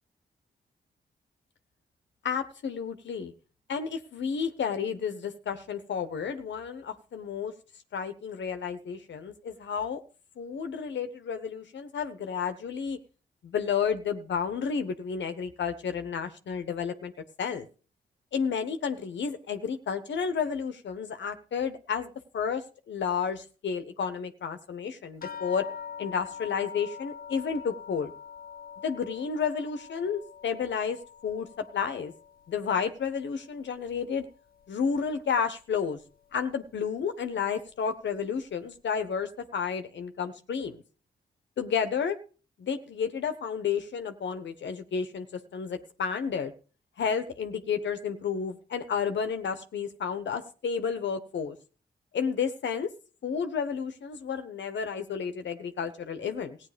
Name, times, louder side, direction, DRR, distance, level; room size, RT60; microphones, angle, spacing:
voice 1, 2.2-3.3 3.7-7.5 7.9-10.0 10.4-13.0 13.4-17.1 17.4-17.7 18.3-25.7 26.0-28.1 28.8-32.1 32.5-34.3 34.7-36.0 36.3-40.8 41.6-42.2 42.6-46.5 47.0-51.6 52.1-52.9 53.2-56.6, left 6 dB, 75° left, 9 dB, 1.3 m, -31 dB
sound 1, 25.2-34.0 34.3-35.2 36.0-36.1 36.5-36.6, left 7 dB, 50° left, 0.9 m, -45 dB
15.5 x 9.3 x 5.2 m, 0.37 s
cardioid pair, 50°, 19 cm